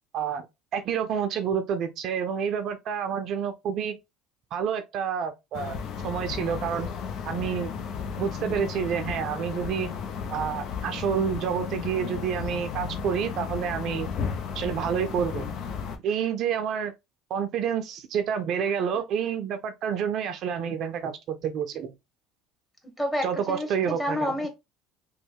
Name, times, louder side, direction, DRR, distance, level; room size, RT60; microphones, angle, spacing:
voice 1, 0.1-0.4 0.7-4.0 4.5-6.9 7.3-7.7 8.2-9.9 10.3-14.1 14.5-15.4 16.0-16.9 17.3-21.9 23.2-24.3, right 7 dB, 55° right, 0.5 m, -29 dB
sound 1, 5.5-16.0, left 6 dB, 60° left, 0.6 m, -34 dB
voice 2, 22.8-24.5, left 1 dB, 5° left, 1.3 m, -29 dB
3.1 x 2.1 x 3.3 m
supercardioid pair, 85°, 0 cm